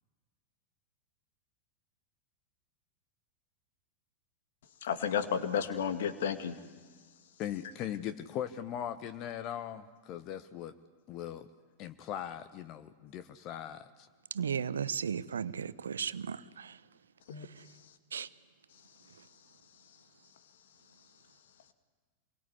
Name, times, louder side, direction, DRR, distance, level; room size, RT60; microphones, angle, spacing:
voice 1, 4.8-6.6 17.3-17.5, left 8 dB, 60° left, 2.2 m, -32 dB
voice 2, 7.4-10.7 11.1-11.5 11.8-14.1, left 10 dB, 40° left, 1.2 m, -39 dB
voice 3, 14.3-16.7 18.1-18.3, right 7 dB, 70° right, 0.9 m, -35 dB
27.0 x 22.5 x 9.9 m
figure-of-eight pair, 90°, 0 cm